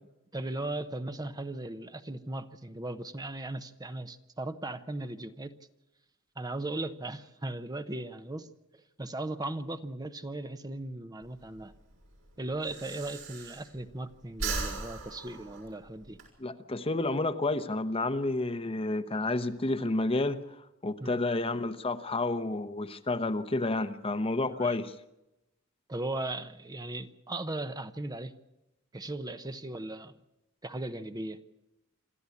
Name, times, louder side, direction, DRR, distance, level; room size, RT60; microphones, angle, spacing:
voice 1, 0.3-5.5 6.4-11.7 12.4-16.2 21.0-21.2 24.5-24.8 25.9-28.3 28.9-30.1 30.6-31.4, right 2 dB, 20° right, 0.8 m, -37 dB
Breathing, 11.2-14.0 14.3-16.3, right 4 dB, 70° right, 6.1 m, -38 dB
voice 2, 16.4-20.4 20.8-24.9, left 2 dB, 25° left, 0.9 m, -30 dB
27.5 x 13.0 x 8.4 m
head